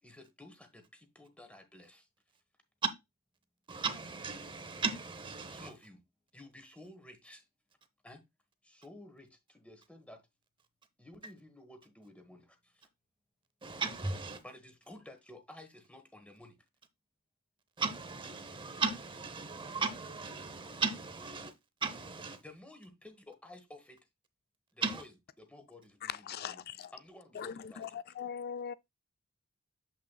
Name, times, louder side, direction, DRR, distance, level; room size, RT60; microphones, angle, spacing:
voice 1, 0.0-2.1 5.5-6.0 6.3-7.5 8.0-8.2 8.6-10.2 11.0-12.8 14.4-16.6 22.4-24.0 24.7-26.2 26.4-26.6 26.9-27.9, left 1 dB, 5° left, 1.1 m, -53 dB
voice 2, 3.7-5.7 13.6-14.4 17.8-21.5 21.8-22.4 24.8-25.0, right 5 dB, 20° right, 0.7 m, -36 dB
voice 3, 26.0-26.9 27.3-28.7, left 8 dB, 45° left, 0.3 m, -40 dB
7.6 x 5.9 x 2.3 m
head